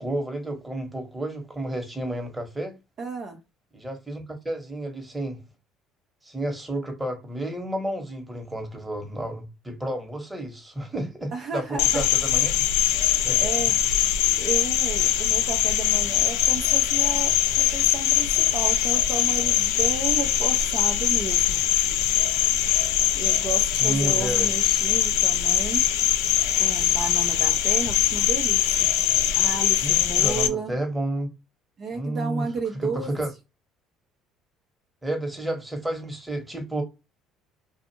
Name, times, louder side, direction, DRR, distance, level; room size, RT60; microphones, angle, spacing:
voice 1, 0.0-2.7 3.7-5.4 6.2-12.5 13.2-13.6 23.8-24.5 29.8-31.3 31.9-32.5 32.8-33.3 35.0-36.8, right 1 dB, 10° right, 1.2 m, -31 dB
voice 2, 3.0-3.4 11.3-12.1 13.0-14.1 14.4-21.6 23.1-25.8 26.6-28.9 29.3-30.7 31.8-33.1, right 4 dB, 50° right, 0.7 m, -33 dB
Cricket, 11.8-30.5, left 11 dB, 80° left, 0.3 m, -22 dB
2.5 x 2.4 x 2.8 m
hypercardioid pair, 70°, 0 cm